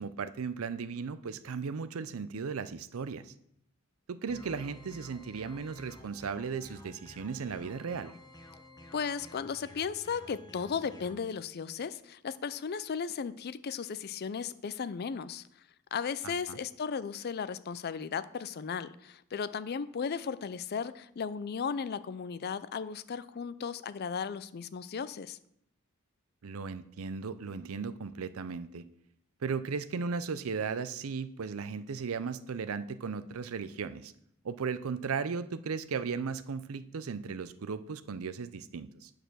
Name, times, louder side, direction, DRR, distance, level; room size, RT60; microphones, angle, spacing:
voice 1, 0.0-3.3 4.1-8.1 16.2-16.6 26.4-28.8 29.4-34.1 34.4-39.1, right 5 dB, 80° right, 14 dB, 0.5 m, -36 dB
sound 1, 4.3-11.1, left 1 dB, 20° left, 1.1 m, -52 dB
voice 2, 8.9-15.4 15.9-25.4, left 6 dB, 50° left, 15 dB, 0.4 m, -35 dB
9.0 x 4.8 x 6.2 m, 0.73 s
head